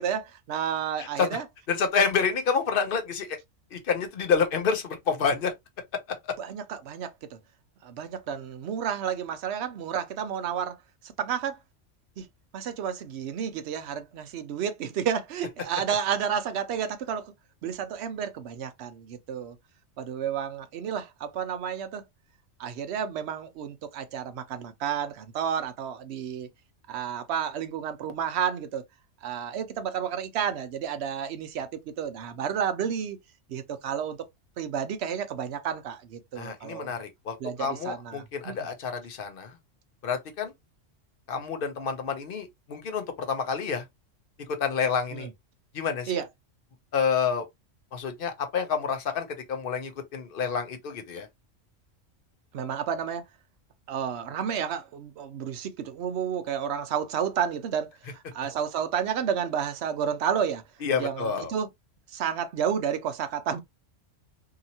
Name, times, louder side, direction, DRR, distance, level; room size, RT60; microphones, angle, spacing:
voice 1, 0.0-1.4 6.4-7.4 7.8-10.8 11.2-11.6 12.2-12.3 12.5-17.3 17.6-19.6 20.0-22.0 22.6-26.5 26.9-28.8 29.2-31.7 32.0-33.2 33.5-34.2 34.6-36.9 37.4-38.6 45.1-45.3 46.1-46.3 52.5-53.2 53.9-60.6 61.0-61.7 62.1-63.6, right 8 dB, 65° right, 0.8 m, -31 dB
voice 2, 1.0-1.4 1.7-3.4 3.7-5.5 6.2-6.3 36.3-39.5 40.0-40.5 41.3-43.8 44.5-45.3 45.7-46.2 46.9-47.4 47.9-51.3 60.8-61.5, left 6 dB, 55° left, 0.8 m, -28 dB
2.8 x 2.8 x 2.6 m
omnidirectional pair, 1.3 m